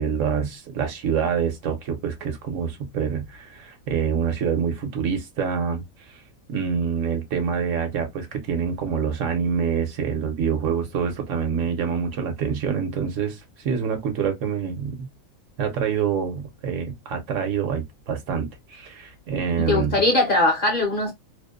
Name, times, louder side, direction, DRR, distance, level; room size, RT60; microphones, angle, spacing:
voice 1, 0.0-6.2 6.5-15.1 15.6-20.0, right 7 dB, 70° right, 1.0 m, -26 dB
voice 2, 19.6-21.1, left 2 dB, 50° left, 0.7 m, -20 dB
2.6 x 2.1 x 2.2 m
omnidirectional pair, 1.4 m